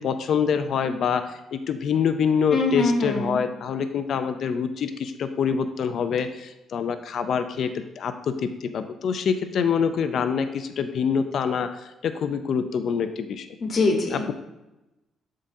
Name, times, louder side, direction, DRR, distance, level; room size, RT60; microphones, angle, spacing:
voice 1, 0.0-7.7 8.0-13.5 14.1-14.3, left 6 dB, 55° left, 9 dB, 0.5 m, -25 dB
voice 2, 2.5-3.4 13.6-14.2, left 3 dB, 40° left, 1 dB, 1.3 m, -23 dB
11.0 x 3.8 x 2.7 m, 0.97 s
cardioid pair, 130°, 0 cm